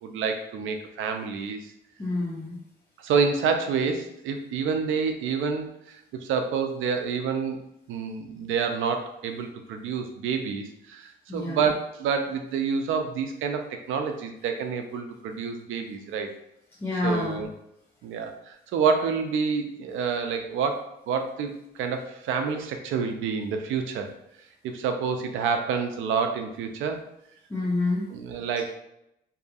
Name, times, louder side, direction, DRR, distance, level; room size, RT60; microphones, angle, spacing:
voice 1, 0.0-1.7 3.0-7.6 7.9-16.3 17.0-17.5 18.0-24.1 24.6-27.0 28.1-28.7, right 5 dB, 85° right, 5 dB, 0.4 m, -28 dB
voice 2, 2.0-2.6 11.3-11.7 16.8-17.4 27.5-28.0, left 2 dB, 10° left, -7 dB, 0.7 m, -27 dB
2.7 x 2.5 x 2.3 m, 0.81 s
cardioid pair, 90°, 20 cm